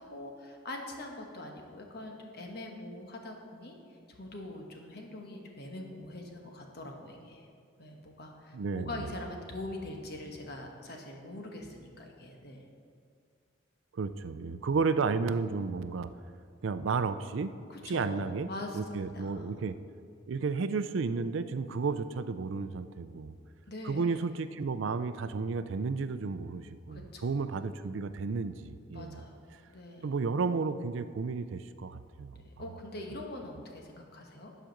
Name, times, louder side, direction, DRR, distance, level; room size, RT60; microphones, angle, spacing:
voice 1, 0.0-3.8 4.1-7.5 7.8-12.7 17.7-19.5 23.7-24.2 26.9-27.3 28.9-29.4 29.7-30.1 32.3-34.6, left 1 dB, 50° left, 2 dB, 1.2 m, -43 dB
voice 2, 8.5-9.1 13.9-16.1 16.6-17.5 17.8-18.5 18.7-19.8 20.3-23.3 23.8-29.2 30.0-32.4, right 4 dB, 70° right, 12 dB, 0.4 m, -32 dB
10.5 x 5.0 x 6.5 m, 2.2 s
head